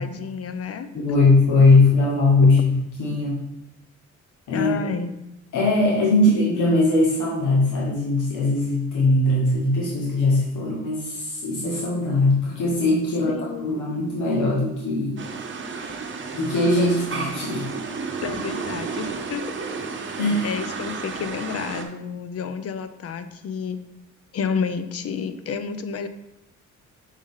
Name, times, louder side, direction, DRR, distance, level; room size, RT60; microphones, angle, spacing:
voice 1, 0.0-0.9 4.5-5.1 6.3-6.4 13.3-13.8 18.2-19.4 20.4-23.8 24.3-26.1, left 6 dB, 50° left, 11 dB, 0.6 m, -30 dB
voice 2, 0.9-3.4 4.5-4.9 5.5-15.2 15.8-16.0 16.3-17.6 20.2-20.6, left 2 dB, 80° left, -4 dB, 1.2 m, -20 dB
sound 1, 15.2-21.9, right 4 dB, 40° right, 0.8 m, -32 dB
5.2 x 4.9 x 3.7 m, 0.86 s
cardioid pair, 90°, 30 cm